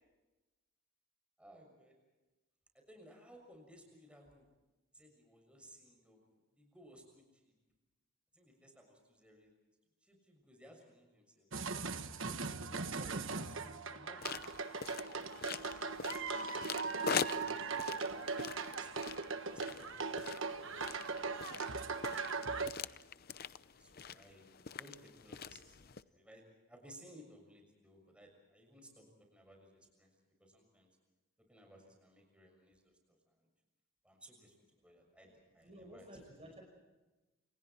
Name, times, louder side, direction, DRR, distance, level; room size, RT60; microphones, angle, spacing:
voice 1, 1.4-2.0 2.7-4.5 4.9-6.2 6.6-7.5 8.3-9.5 10.0-11.5 12.0-14.6 15.0-15.7 17.2-18.9 19.5-21.7 23.7-26.4 26.7-30.1 30.4-30.9 31.5-32.9 34.0-34.5 34.8-36.1, equal, 5° right, 2 dB, 6.6 m, -60 dB
sound 1, 11.5-22.7, right 4 dB, 60° right, 1.4 m, -39 dB
sound 2, 14.2-26.0, left 6 dB, 45° left, 0.7 m, -44 dB
voice 2, 35.2-36.6, equal, 25° right, 2 dB, 5.3 m, -54 dB
29.5 x 28.0 x 4.5 m, 1.1 s
head